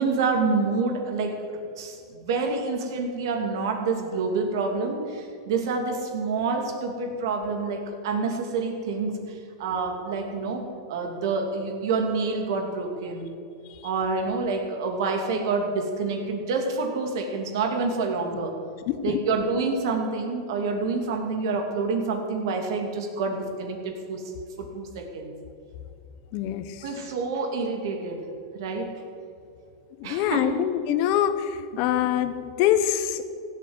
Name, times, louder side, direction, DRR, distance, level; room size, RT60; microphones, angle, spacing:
voice 1, 0.0-13.3 13.8-18.5 19.0-24.2 24.6-25.3 26.8-28.2 28.5-28.9 30.0-30.6, right 4 dB, 70° right, 3 dB, 2.7 m, -27 dB
voice 2, 18.9-19.2 26.3-26.6 30.0-31.3 31.8-33.2, left 11 dB, 50° left, 11 dB, 1.1 m, -24 dB
16.0 x 8.1 x 8.0 m, 2.5 s
supercardioid pair, 140°, 2 cm